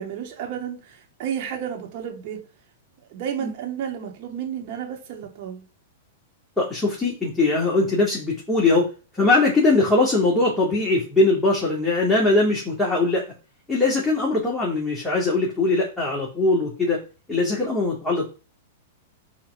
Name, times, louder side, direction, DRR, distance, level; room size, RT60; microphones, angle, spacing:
voice 1, 0.0-2.4 3.1-5.6, right 8 dB, 55° right, 2.6 m, -32 dB
voice 2, 6.6-8.9 9.1-13.2 13.7-17.0 17.3-18.3, left 2 dB, 10° left, 2.5 m, -21 dB
5.8 x 4.3 x 5.6 m
hypercardioid pair, 115°, 0 cm